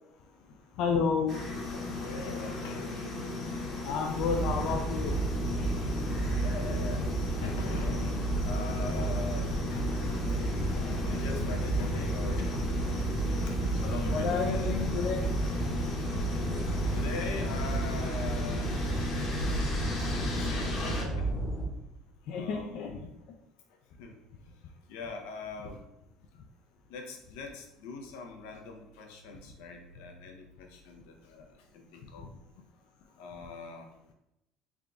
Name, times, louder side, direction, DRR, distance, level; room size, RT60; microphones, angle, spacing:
voice 1, 0.8-1.4 3.8-5.2 14.1-15.3 22.3-23.1, left 5 dB, 60° left, 2 dB, 0.4 m, -30 dB
sound 1, 1.3-21.0, left 2 dB, 40° left, 0.9 m, -36 dB
voice 2, 1.7-3.0 5.2-5.3 6.0-6.1 6.4-12.6 13.7-14.7 16.9-18.7 20.1-21.3 22.3-23.1 24.0-24.1 24.9-25.8 26.9-31.5 31.7-32.3 33.2-33.9, left 3 dB, 85° left, 3 dB, 0.7 m, -42 dB
sound 2, 4.2-21.7, right 2 dB, 10° left, 0.8 m, -32 dB
3.6 x 2.3 x 3.7 m, 0.86 s
cardioid pair, 130°, 0 cm